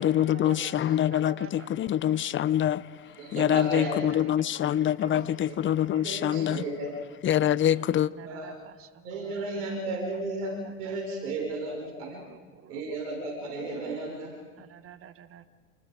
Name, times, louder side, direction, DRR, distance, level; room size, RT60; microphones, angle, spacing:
voice 1, 0.0-6.6 7.2-8.1, left 11 dB, 25° left, 0.6 m, -25 dB
voice 2, 1.1-1.5 8.4-8.9 9.1-9.7 10.8-11.0 11.2-11.3 12.3-12.8 14.6-15.5, right 9 dB, 30° right, 1.2 m, -48 dB
voice 3, 3.2-3.9 6.0-6.9 8.3-8.5 9.0-12.2 12.7-14.3, right 2 dB, 75° right, 5.3 m, -34 dB
28.0 x 20.5 x 5.0 m
hypercardioid pair, 90°, 45 cm